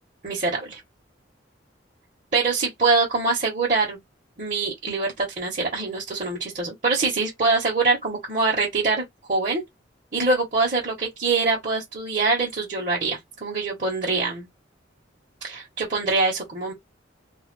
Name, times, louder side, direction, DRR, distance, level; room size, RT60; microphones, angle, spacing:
voice 1, 0.2-0.8 2.3-4.0 4.4-9.0 9.3-9.6 10.1-14.5 15.4-16.7, right 3 dB, 40° right, 1.1 m, -24 dB
2.4 x 2.2 x 3.5 m
head